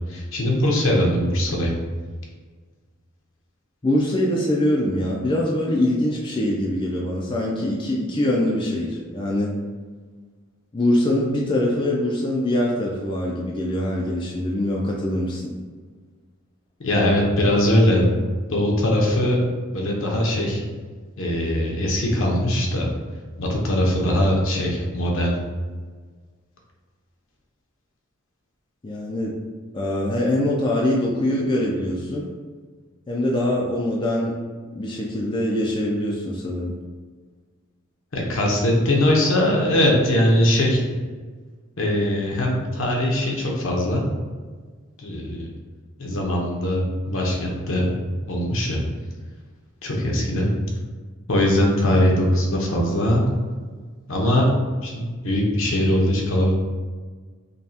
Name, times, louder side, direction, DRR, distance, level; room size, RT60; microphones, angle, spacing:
voice 1, 0.1-1.7 16.8-18.1 18.5-19.4 19.7-20.6 21.2-22.9 23.4-25.4 38.1-40.8 41.8-44.1 45.0-45.5 46.0-48.0 48.3-48.8 49.8-50.5 51.3-53.3 54.1-56.5, left 1 dB, 65° left, -1 dB, 0.9 m, -21 dB
voice 2, 3.8-9.5 10.7-15.5 28.8-29.3 29.7-32.3 33.1-34.4 34.7-36.7, left 1 dB, 25° left, -3 dB, 0.4 m, -23 dB
5.2 x 2.3 x 2.8 m, 1.5 s
head